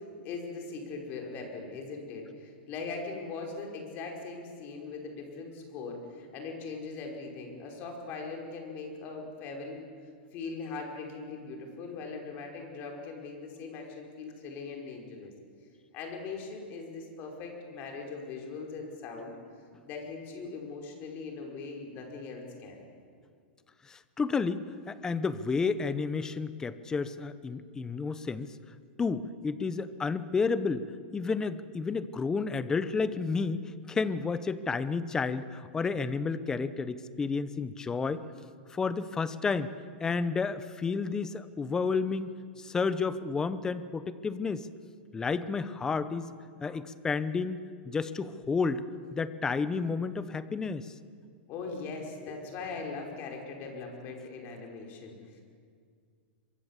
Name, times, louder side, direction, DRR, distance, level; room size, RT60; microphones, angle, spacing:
voice 1, 0.2-9.8 10.3-15.3 15.9-19.3 19.8-22.8 51.5-55.4, left 4 dB, 35° left, 1 dB, 5.2 m, -40 dB
voice 2, 23.9-28.5 29.0-30.9 31.1-38.2 38.7-39.7 40.0-42.3 42.6-44.7 45.1-46.3 46.6-48.8 49.1-50.9, left 4 dB, 10° left, 14 dB, 0.9 m, -31 dB
26.0 x 23.5 x 7.5 m, 2.1 s
supercardioid pair, 155°, 6 cm